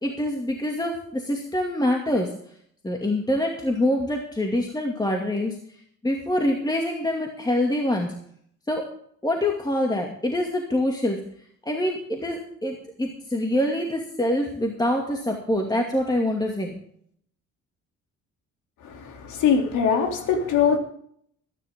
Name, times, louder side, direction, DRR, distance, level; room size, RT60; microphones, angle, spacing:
voice 1, 0.0-2.3 2.8-5.6 6.0-8.1 8.7-8.9 9.2-11.2 11.7-16.7, left 1 dB, 15° left, 1 dB, 2.3 m, -25 dB
voice 2, 18.8-20.8, left 7 dB, 85° left, 4 dB, 3.0 m, -22 dB
21.0 x 10.5 x 3.7 m, 0.64 s
cardioid pair, 90°, 30 cm